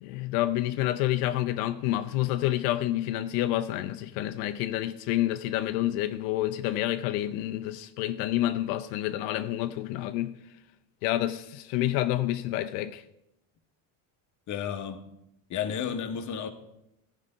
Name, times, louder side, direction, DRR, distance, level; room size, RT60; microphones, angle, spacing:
voice 1, 0.0-10.4 11.0-13.0, left 14 dB, 85° left, 0.6 m, -28 dB
voice 2, 14.5-15.0 15.5-16.5, left 8 dB, 40° left, 1.1 m, -32 dB
14.5 x 5.0 x 5.4 m
cardioid pair, 130°, 46 cm